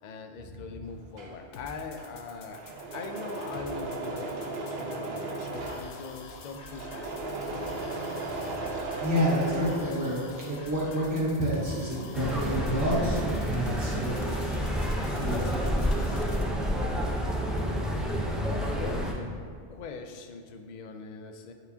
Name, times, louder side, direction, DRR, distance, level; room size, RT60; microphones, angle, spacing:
voice 1, 0.0-2.7 2.9-4.4 4.6-7.3 17.2-19.3 19.7-21.5, left 4 dB, 55° left, 6 dB, 0.5 m, -42 dB
Engine / Mechanisms, 0.9-10.5 10.9-13.2 13.5-14.2, right 2 dB, 60° right, 0.9 m, -37 dB
sound 1, 1.5-16.4, left 3 dB, 75° left, 1.0 m, -46 dB
voice 2, 8.9-10.2 10.4-14.2 15.1-15.4, equal, 15° right, -8 dB, 1.0 m, -28 dB
sound 2, 12.1-19.1, equal, ahead, 0.5 m, -29 dB
9.6 x 4.5 x 2.7 m, 2.1 s
omnidirectional pair, 1.2 m